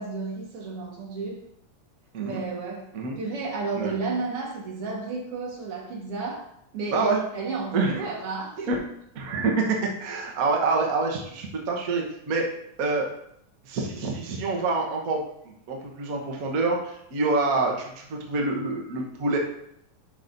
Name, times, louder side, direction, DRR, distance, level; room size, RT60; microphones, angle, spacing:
voice 1, 0.0-1.4 2.2-2.9 3.2-6.5 6.7-8.7, right 4 dB, 55° right, -2 dB, 2.3 m, -32 dB
voice 2, 6.9-7.2 7.7-8.1 8.7-8.8 9.1-12.4 12.8-13.1 13.6-15.2 15.7-19.4, right 3 dB, 75° right, 0 dB, 0.8 m, -26 dB
11.0 x 5.9 x 2.6 m, 0.72 s
omnidirectional pair, 3.4 m